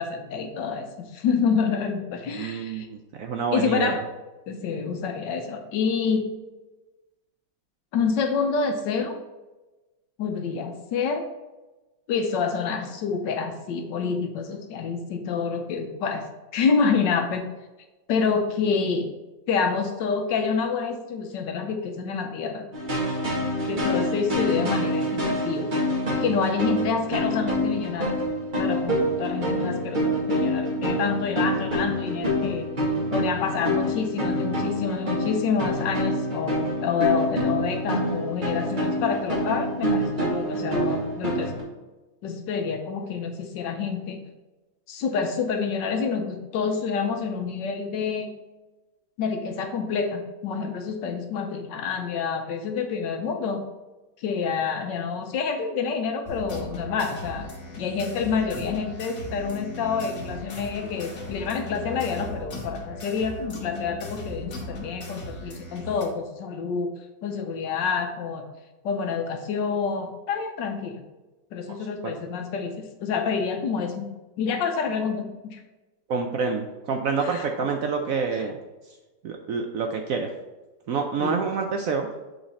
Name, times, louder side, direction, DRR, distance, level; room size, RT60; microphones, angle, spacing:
voice 1, 0.0-2.9 3.5-4.0 4.5-6.3 7.9-9.1 10.2-11.2 12.1-17.5 18.1-19.1 19.5-22.7 23.7-25.7 26.2-28.2 28.6-32.7 33.1-41.5 42.2-44.2 44.9-48.3 49.2-53.6 54.2-66.9 67.2-68.5 68.8-71.0 71.5-74.1 74.4-75.6 77.2-77.5 81.2-81.4, left 5 dB, 80° left, 5 dB, 1.5 m, -27 dB
voice 2, 2.3-4.0 71.7-71.8 72.0-72.1 76.1-78.6 79.2-80.3 80.9-82.1, right 5 dB, 70° right, 4 dB, 0.8 m, -27 dB
sound 1, 22.7-41.6, equal, 30° right, 1.6 m, -26 dB
sound 2, 56.3-66.0, left 2 dB, 45° left, 1.4 m, -37 dB
7.9 x 4.0 x 4.1 m, 1.1 s
omnidirectional pair, 2.0 m